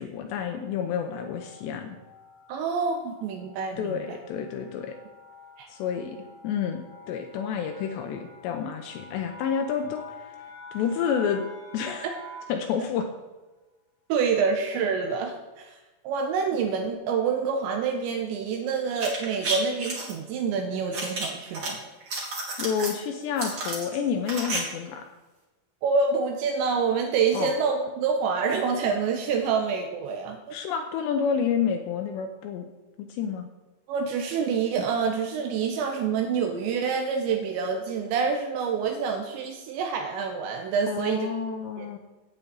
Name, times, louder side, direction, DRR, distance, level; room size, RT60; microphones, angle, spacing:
voice 1, 0.0-2.0 3.8-5.0 5.7-6.2 6.4-10.3 10.7-11.5 11.7-12.1 12.5-13.1 22.6-25.1 27.3-27.5 30.5-32.7 33.0-33.5 40.9-42.0, left 7 dB, 80° left, 5 dB, 2.7 m, -29 dB
sound 1, 0.6-12.7, left 1 dB, 45° left, 3.1 m, -47 dB
voice 2, 2.5-4.0 5.6-5.7 14.1-15.8 16.0-21.8 25.8-30.5 33.9-41.3 41.8-41.9, right 5 dB, 80° right, 3 dB, 3.0 m, -27 dB
sound 2, 18.9-20.1 20.9-21.7 22.0-23.0 23.4-24.6 24.8-24.9, right 3 dB, 40° right, 2.0 m, -31 dB
9.3 x 6.9 x 8.5 m, 1.1 s
omnidirectional pair, 5.5 m